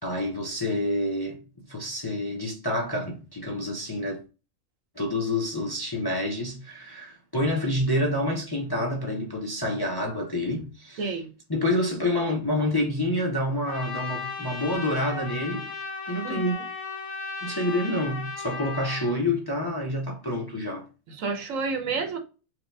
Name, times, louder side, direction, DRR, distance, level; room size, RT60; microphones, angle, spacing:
voice 1, 0.0-1.4 1.6-4.2 5.0-11.1 11.5-15.7 16.1-16.6 17.4-20.9, left 1 dB, 25° left, 0.6 m, -28 dB
voice 2, 11.0-11.3 16.2-16.5 21.1-22.2, right 4 dB, 70° right, 1.2 m, -30 dB
Trumpet, 13.7-19.1, left 4 dB, 80° left, 1.5 m, -35 dB
4.8 x 2.4 x 3.2 m
omnidirectional pair, 1.4 m